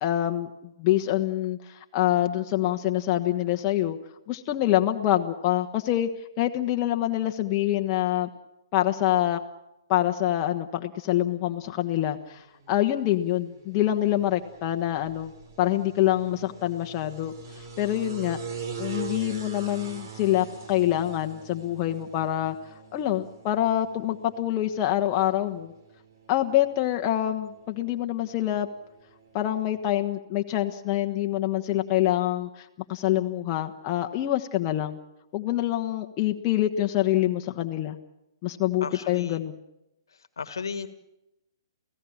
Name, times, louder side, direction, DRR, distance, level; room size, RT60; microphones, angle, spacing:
voice 1, 0.0-4.0 4.3-6.1 6.4-8.3 8.7-9.4 9.9-15.3 15.6-17.3 17.8-18.4 18.8-22.6 22.9-25.7 26.3-28.7 29.3-35.0 35.3-38.0 38.4-39.6, left 13 dB, 30° left, 4 dB, 1.3 m, -26 dB
sound 1, 11.8-29.9, right 5 dB, 55° right, 4.3 m, -44 dB
voice 2, 38.8-39.4 40.4-40.9, left 5 dB, 70° left, 12 dB, 1.6 m, -34 dB
29.5 x 17.0 x 7.4 m, 0.90 s
figure-of-eight pair, 120°, 2 cm